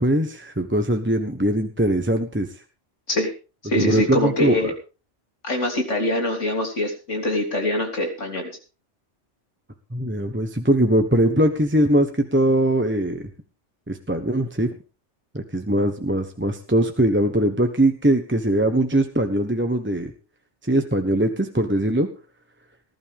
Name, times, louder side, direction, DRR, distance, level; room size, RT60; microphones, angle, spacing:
voice 1, 0.0-2.5 3.7-4.7 9.9-13.3 13.9-14.7 15.3-20.1 20.6-22.1, right 1 dB, 10° right, 6 dB, 1.1 m, -21 dB
voice 2, 3.6-4.7 5.4-8.6, left 1 dB, 90° left, 2 dB, 3.7 m, -24 dB
19.5 x 12.0 x 3.6 m, 0.34 s
omnidirectional pair, 1.2 m